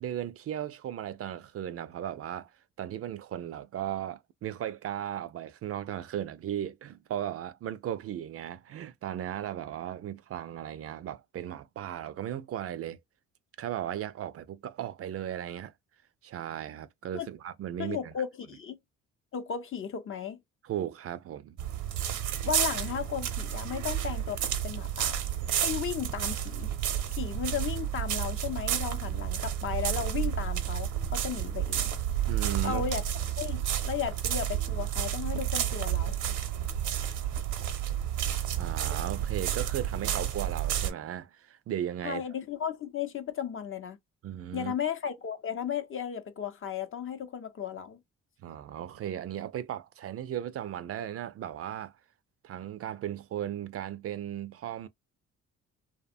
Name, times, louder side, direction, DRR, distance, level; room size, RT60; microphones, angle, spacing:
voice 1, 0.0-2.5 2.8-13.0 13.6-15.7 16.2-18.1 20.6-21.6 32.3-32.8 38.6-42.2 44.2-44.7 48.4-51.9 52.4-54.9, right 11 dB, 50° right, 0.4 m, -36 dB
voice 2, 17.8-18.8 19.3-20.4 22.4-25.2 25.6-26.7 27.1-31.9 32.6-33.0 33.4-36.2 42.0-44.0 44.5-48.0, left 8 dB, 45° left, 0.6 m, -35 dB
sound 1, 21.6-40.9, right 10 dB, 80° right, 0.7 m, -31 dB
2.8 x 2.1 x 2.5 m
cardioid pair, 90°, 30 cm